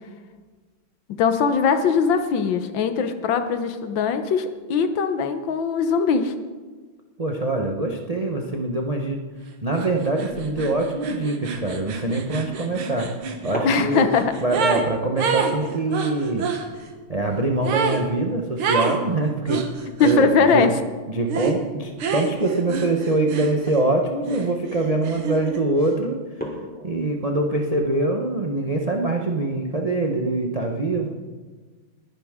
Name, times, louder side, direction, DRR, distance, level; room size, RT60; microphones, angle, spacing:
voice 1, 1.2-6.3 13.6-14.3 20.0-20.8, left 5 dB, 70° left, 9 dB, 1.6 m, -21 dB
voice 2, 7.2-9.2 9.6-13.1 13.4-14.1 14.4-16.5 17.1-19.6 20.0-20.7 21.1-26.2 26.8-31.1, right 2 dB, 50° right, 2 dB, 0.4 m, -24 dB
sound 1, 9.7-9.9 10.2-14.9 15.2-16.6 17.6-18.0 18.6-19.0 19.5-20.2 21.3-21.6 22.0-23.9 24.2-25.6, right 5 dB, 85° right, 2.1 m, -28 dB
sound 2, 16.9-19.8 20.1-20.2 20.6-20.9 21.9-22.1 22.8-22.9 23.4-23.5 23.8-24.2 24.8-25.1 25.5-25.6 26.2-28.6, equal, 5° left, 2.4 m, -40 dB
20.5 x 11.0 x 3.7 m, 1.4 s
omnidirectional pair, 2.3 m